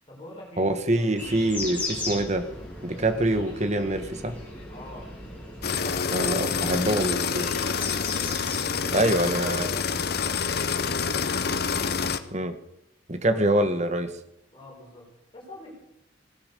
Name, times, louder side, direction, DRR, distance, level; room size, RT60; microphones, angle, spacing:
voice 1, 0.1-1.2 2.9-3.1 4.7-5.1 5.7-8.3 8.7-10.6 13.3-13.5 14.5-15.8, left 1 dB, 30° left, -4 dB, 4.6 m, -45 dB
voice 2, 0.6-2.5 2.8-4.4 6.1-7.5 8.9-9.7 12.3-12.5 13.1-14.1, right 1 dB, 40° right, 10 dB, 1.3 m, -25 dB
sound 1, 1.2-9.6, left 2 dB, 10° left, 4.9 m, -38 dB
sound 2, 5.6-12.2, left 5 dB, 60° left, 0.9 m, -27 dB
17.5 x 10.0 x 6.7 m, 0.82 s
head